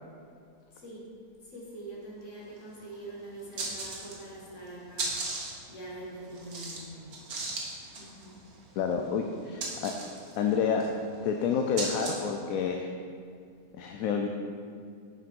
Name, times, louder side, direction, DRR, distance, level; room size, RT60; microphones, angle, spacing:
voice 1, 0.7-1.0 1.4-7.1 8.0-8.4, right 1 dB, 55° left, -4 dB, 2.1 m, -44 dB
sound 1, 2.6-2.7 2.9-3.0 3.4-4.4 4.7-12.4, right 3 dB, 85° right, 1.8 m, -37 dB
voice 2, 8.8-9.9 10.4-10.9 11.2-12.9 13.8-14.3, left 6 dB, 75° left, 3 dB, 1.0 m, -29 dB
7.3 x 6.0 x 5.3 m, 2.3 s
omnidirectional pair, 1.5 m